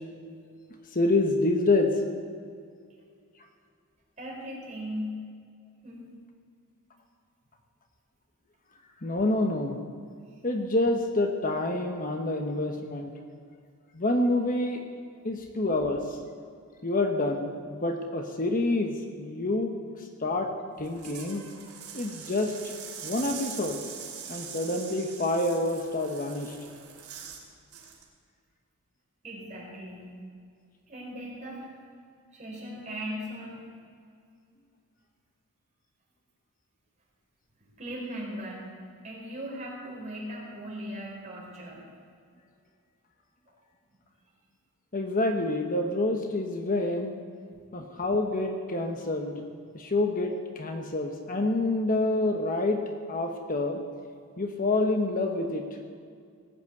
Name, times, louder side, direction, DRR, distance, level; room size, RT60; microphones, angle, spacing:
voice 1, 0.9-1.9 9.0-9.8 10.4-13.1 13.9-14.8 15.2-16.2 16.8-20.5 20.8-21.4 21.9-22.7 23.0-23.8 24.3-26.6 44.9-47.1 47.7-49.3 49.7-53.8 54.4-55.6, left 2 dB, 40° left, 4 dB, 1.1 m, -27 dB
voice 2, 4.2-5.1 5.8-6.0 29.2-30.0 30.9-31.7 32.3-33.6 37.6-38.6 39.0-41.8, equal, 35° right, -4 dB, 4.8 m, -38 dB
sound 1, 20.8-27.4 27.7-28.0, right 7 dB, 85° right, 2.9 m, -42 dB
18.5 x 8.0 x 8.0 m, 2.2 s
head